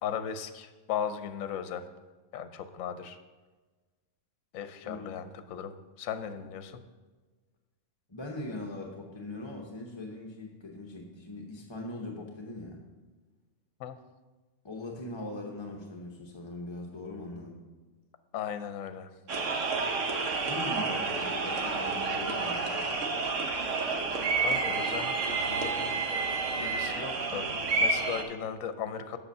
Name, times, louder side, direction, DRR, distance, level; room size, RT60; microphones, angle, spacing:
voice 1, 0.0-1.9 2.3-3.2 4.5-6.8 13.8-14.0 18.3-19.1 24.4-26.0 26.6-27.5 27.8-29.2, left 8 dB, 75° left, 10 dB, 1.0 m, -37 dB
voice 2, 4.8-5.2 8.1-12.9 14.6-17.6 20.4-22.9, left 2 dB, 25° left, -1 dB, 0.8 m, -41 dB
sound 1, 19.3-28.2, right 4 dB, 65° right, 1.1 m, -30 dB
7.9 x 6.3 x 5.5 m, 1.3 s
omnidirectional pair, 1.5 m